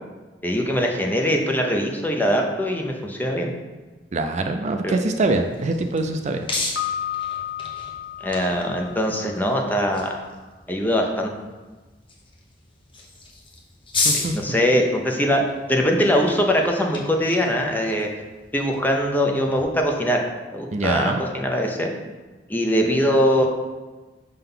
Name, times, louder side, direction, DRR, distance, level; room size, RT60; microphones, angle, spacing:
voice 1, 0.4-3.5 4.8-5.0 8.2-10.1 10.7-11.3 14.1-15.4 15.7-18.1 18.5-20.2 20.5-21.9 22.5-23.5, equal, 10° left, 1 dB, 0.7 m, -22 dB
voice 2, 4.1-6.4 14.0-14.3 20.7-21.2, right 2 dB, 40° right, 6 dB, 0.4 m, -23 dB
sound 1, 5.2-19.6, left 3 dB, 30° left, 1.0 m, -34 dB
Piano, 6.8-9.6, left 10 dB, 70° left, 0.7 m, -32 dB
5.5 x 3.9 x 5.5 m, 1.2 s
head